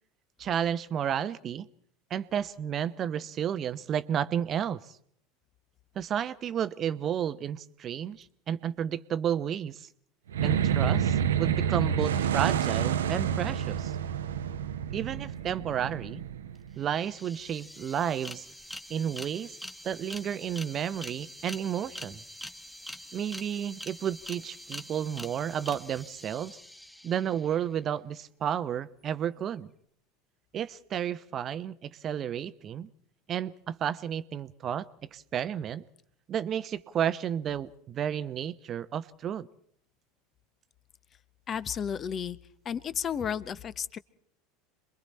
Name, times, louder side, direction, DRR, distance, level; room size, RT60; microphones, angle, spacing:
voice 1, 0.4-1.7 2.1-4.9 5.9-9.9 10.4-13.9 14.9-16.2 16.8-18.5 18.9-19.6 19.8-22.2 23.1-26.6 27.0-29.7 30.5-32.9 33.3-34.9 35.1-35.8 36.3-39.5, right 9 dB, 40° right, 16 dB, 0.8 m, -32 dB
sound 1, 10.3-16.9, right 8 dB, 75° right, 0.8 m, -28 dB
sound 2, 16.5-16.6 16.8-27.6, equal, 5° left, 1.6 m, -45 dB
voice 2, 41.5-42.4 42.6-44.0, left 8 dB, 35° left, 16 dB, 0.9 m, -32 dB
27.5 x 22.5 x 4.3 m, 0.64 s
figure-of-eight pair, 80°, 0 cm